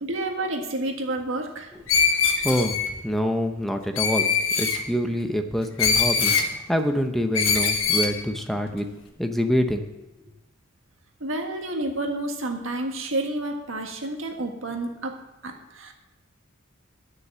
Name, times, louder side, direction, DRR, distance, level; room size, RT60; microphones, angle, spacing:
voice 1, 0.0-1.7 11.2-15.1 15.4-15.9, right 2 dB, 70° right, 3 dB, 1.7 m, -30 dB
Screech, 1.9-2.9 4.0-4.8 5.8-6.5 7.3-8.1, left 5 dB, 85° left, 1.4 m, -22 dB
voice 2, 2.2-8.9 9.2-9.8, equal, ahead, 6 dB, 0.7 m, -26 dB
10.0 x 6.5 x 7.4 m, 1.0 s
head